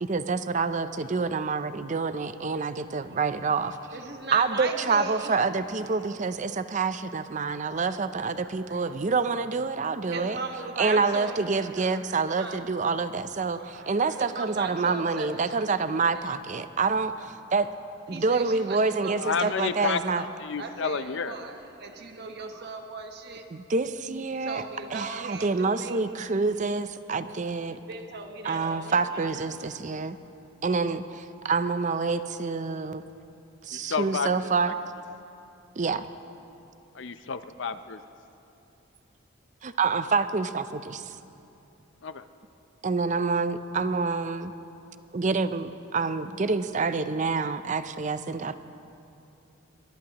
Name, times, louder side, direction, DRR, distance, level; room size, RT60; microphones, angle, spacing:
voice 1, 0.0-3.8 4.3-10.4 10.8-17.7 18.1-20.2 23.5-24.6 24.9-27.8 28.4-30.2 30.6-33.0 33.6-34.7 35.8-36.1 39.6-41.1 42.8-44.5 45.1-48.5, right 4 dB, 35° right, 12 dB, 0.5 m, -27 dB
voice 2, 1.0-1.6 2.8-5.4 5.8-6.4 6.9-7.2 8.3-8.9 9.2-9.4 9.9-12.7 13.6-16.4 16.7-16.8 18.1-23.5 24.1-26.0 27.7-29.6, right 3 dB, 55° right, 4 dB, 1.3 m, -39 dB
voice 3, 19.1-20.0 20.4-21.3 33.7-34.7 36.9-38.0 42.0-42.3, left 5 dB, 60° left, 11 dB, 0.6 m, -30 dB
22.5 x 21.0 x 3.0 m, 2.7 s
head